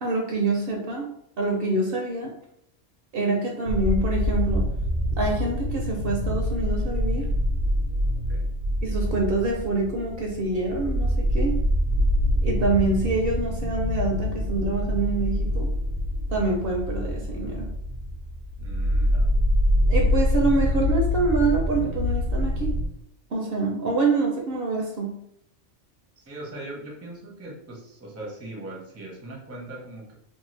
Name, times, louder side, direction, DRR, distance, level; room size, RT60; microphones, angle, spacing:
voice 1, 0.0-2.3 3.1-4.6 5.2-7.3 8.8-11.6 12.4-15.7 16.3-17.7 19.9-22.8 23.3-25.1, right 3 dB, 60° right, 0 dB, 0.7 m, -26 dB
sound 1, 3.7-22.9, left 1 dB, 85° right, 0.9 m, -25 dB
voice 2, 18.6-19.3 26.2-30.2, right 2 dB, 20° right, -3 dB, 0.5 m, -40 dB
2.6 x 2.2 x 3.1 m, 0.72 s
omnidirectional pair, 1.2 m